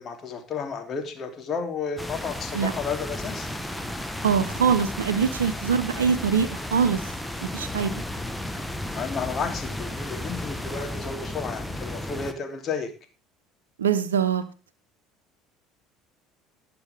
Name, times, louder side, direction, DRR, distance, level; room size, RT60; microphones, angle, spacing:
voice 1, 0.0-3.5 8.9-12.9, left 5 dB, 40° left, 4 dB, 3.2 m, -32 dB
sound 1, 2.0-12.3, left 1 dB, 5° left, 1.4 m, -33 dB
voice 2, 4.2-7.1 7.4-8.0 13.8-14.5, right 7 dB, 80° right, 8 dB, 0.9 m, -23 dB
19.5 x 6.9 x 3.6 m, 0.34 s
figure-of-eight pair, 65°, 0 cm